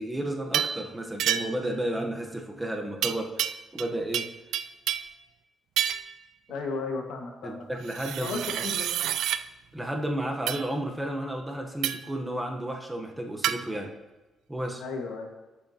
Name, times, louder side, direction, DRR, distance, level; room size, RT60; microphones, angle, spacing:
voice 1, 0.0-4.3 7.4-8.6 9.7-13.9 14.5-14.8, right 1 dB, 10° right, 2 dB, 1.0 m, -32 dB
sound 1, 0.5-0.8 1.2-1.7 3.0-3.9 4.1-5.2 5.8-6.1 7.9-9.4 10.5-10.7 11.8-12.1 13.4-13.6, right 10 dB, 80° right, 0.4 m, -29 dB
voice 2, 6.5-7.6 8.2-8.8 14.8-15.3, left 4 dB, 85° left, 2 dB, 1.6 m, -34 dB
14.0 x 7.2 x 2.9 m, 1.1 s
cardioid pair, 150°, 0 cm